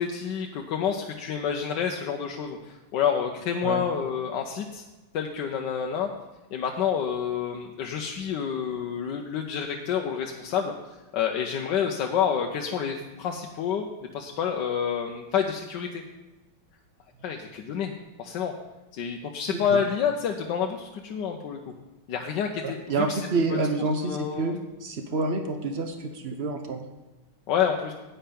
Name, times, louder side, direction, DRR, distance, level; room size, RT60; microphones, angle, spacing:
voice 1, 0.0-4.8 5.1-6.1 6.5-10.7 11.1-13.9 14.1-16.0 17.2-17.9 18.2-18.5 18.9-21.6 22.1-23.2 23.5-23.7 24.0-24.5 27.5-27.9, left 7 dB, 70° left, 2 dB, 1.3 m, -28 dB
voice 2, 19.5-19.8 22.6-26.9, right 3 dB, 85° right, 6 dB, 0.5 m, -28 dB
10.0 x 9.1 x 5.2 m, 1.1 s
omnidirectional pair, 2.2 m